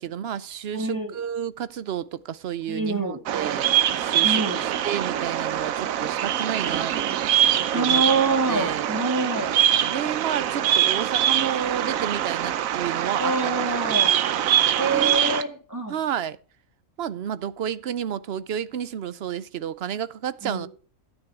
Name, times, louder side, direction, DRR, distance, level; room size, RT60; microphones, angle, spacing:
voice 1, 0.0-6.9 7.7-8.0 8.5-8.9 9.8-13.5 13.8-14.1 14.8-15.3 15.9-16.4 17.0-20.7, right 9 dB, 55° right, 0.8 m, -31 dB
voice 2, 0.7-1.1 2.7-3.2 4.2-4.7 7.7-9.6 13.2-14.2 14.8-15.9 20.4-20.7, right 3 dB, 15° right, 2.6 m, -26 dB
Bird vocalization bird call bird song, 3.3-15.4, right 10 dB, 85° right, 1.1 m, -23 dB
12.5 x 9.5 x 3.6 m
omnidirectional pair, 1.4 m